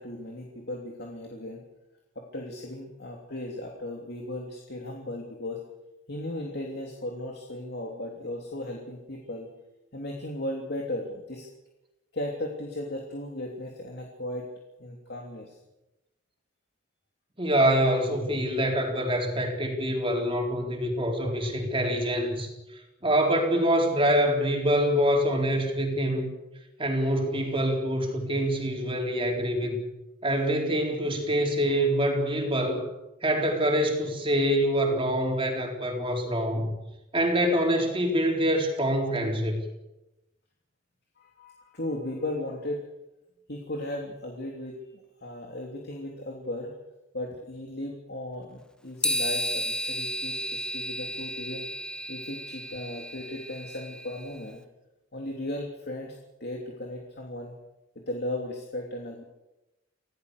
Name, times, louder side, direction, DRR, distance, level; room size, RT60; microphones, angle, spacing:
voice 1, 0.0-1.6 2.1-5.6 6.1-9.5 9.9-11.5 12.1-14.5 14.8-15.6 41.2-42.9 43.5-46.7 47.1-51.7 52.1-54.6 55.1-57.5 57.9-59.2, left 1 dB, 60° left, 1 dB, 3.1 m, -36 dB
voice 2, 17.4-22.5 23.0-26.3 26.8-29.8 30.2-32.9 33.2-36.7 37.1-39.7, equal, 30° right, 2 dB, 4.0 m, -25 dB
sound 1, 49.0-54.3, equal, 5° left, 1.5 m, -33 dB
26.5 x 17.0 x 6.7 m, 0.96 s
head